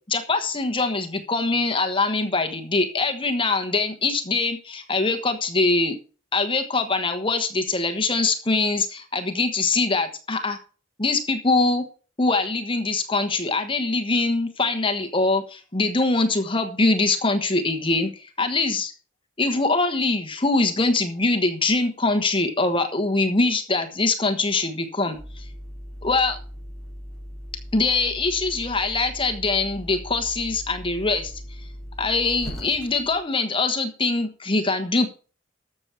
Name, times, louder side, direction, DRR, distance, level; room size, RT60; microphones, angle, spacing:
voice 1, 0.1-6.0 6.3-10.6 11.0-11.8 12.2-18.9 19.4-25.5 26.0-26.4 27.7-31.3 32.0-35.1, left 3 dB, 25° left, 7 dB, 1.2 m, -23 dB
sound 1, 25.1-33.2, equal, ahead, 6.4 m, -39 dB
13.5 x 7.0 x 4.5 m, 0.37 s
head